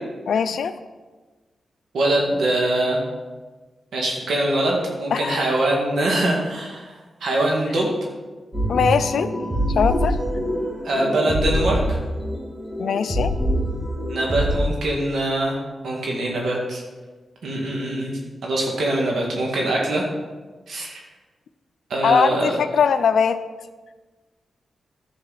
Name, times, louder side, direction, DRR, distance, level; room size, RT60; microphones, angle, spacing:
voice 1, 0.3-0.7 5.1-5.4 8.7-9.3 9.8-10.2 12.8-13.3 22.0-23.4, left 6 dB, 80° left, 12 dB, 0.5 m, -20 dB
voice 2, 1.9-3.0 3.9-6.9 7.2-7.9 10.8-12.0 14.1-15.6 15.8-16.8 17.4-20.1 20.7-21.0 21.9-22.6, right 1 dB, 80° right, -1 dB, 1.9 m, -23 dB
sound 1, 8.5-14.6, equal, 15° right, 2.4 m, -25 dB
10.5 x 6.8 x 4.1 m, 1.3 s
cardioid pair, 50°, 0 cm